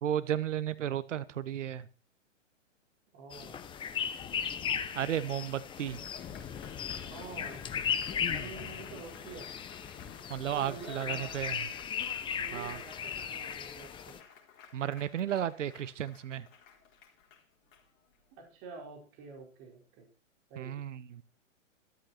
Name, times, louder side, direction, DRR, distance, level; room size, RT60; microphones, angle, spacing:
voice 1, 0.0-1.9 4.9-6.0 10.3-11.6 12.5-12.8 14.7-16.5 20.6-21.2, right 10 dB, 70° right, 15 dB, 1.1 m, -34 dB
voice 2, 3.1-3.6 7.0-7.6 8.0-9.5 10.5-11.3 12.4-14.1 18.3-20.1 20.5-20.8, right 4 dB, 30° right, 2 dB, 4.8 m, -47 dB
sound 1, 3.3-14.2, left 8 dB, 15° left, 0.9 m, -37 dB
Applause, 5.5-18.3, left 7 dB, 30° left, 4.2 m, -56 dB
13.5 x 13.5 x 4.4 m, 0.33 s
hypercardioid pair, 130°, 39 cm